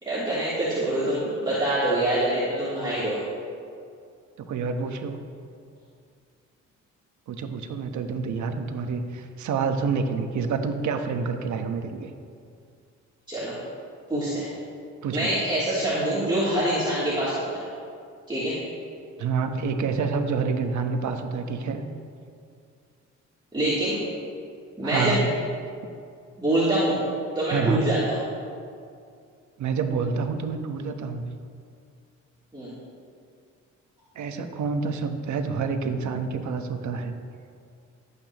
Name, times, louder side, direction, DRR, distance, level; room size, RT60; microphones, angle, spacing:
voice 1, 0.0-3.2 13.3-13.6 14.1-14.5 15.1-17.6 18.3-18.6 23.5-24.0 24.8-25.2 26.4-27.0 27.3-28.2 32.5-32.7, right 1 dB, 15° right, -11 dB, 3.1 m, -25 dB
voice 2, 4.5-5.2 7.3-12.1 15.0-15.3 19.2-21.8 24.8-25.2 27.5-27.9 29.6-31.3 34.1-37.1, right 5 dB, 70° right, 6 dB, 1.2 m, -28 dB
18.5 x 8.7 x 3.0 m, 2.3 s
cardioid pair, 90°, 30 cm